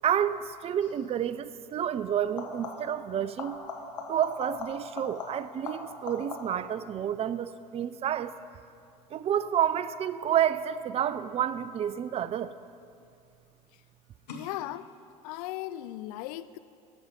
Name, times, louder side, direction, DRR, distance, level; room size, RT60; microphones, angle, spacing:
voice 1, 0.0-3.6 4.1-8.3 9.1-12.5, right 9 dB, 30° right, 15 dB, 0.4 m, -29 dB
sound 1, 0.8-1.1 2.2-3.0 3.4-6.7 12.2-12.8 14.3-14.4, left 4 dB, 80° left, 1.3 m, -40 dB
voice 2, 14.3-14.9 15.2-16.6, left 14 dB, 65° left, 14 dB, 0.4 m, -37 dB
14.0 x 6.1 x 5.2 m, 2.5 s
figure-of-eight pair, 70°, 21 cm